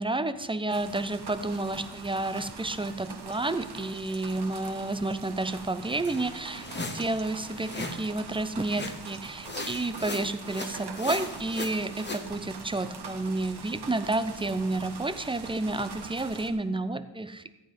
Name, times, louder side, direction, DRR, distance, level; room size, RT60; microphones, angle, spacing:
voice 1, 0.0-17.5, right 2 dB, 15° right, 12 dB, 0.5 m, -30 dB
sound 1, 0.7-16.5, right 5 dB, 65° right, 1.4 m, -43 dB
sound 2, 6.0-8.1 8.6-9.2 9.4-12.3, left 2 dB, 25° left, 1.0 m, -38 dB
14.0 x 9.8 x 5.2 m, 0.98 s
wide cardioid pair, 150°, 42 cm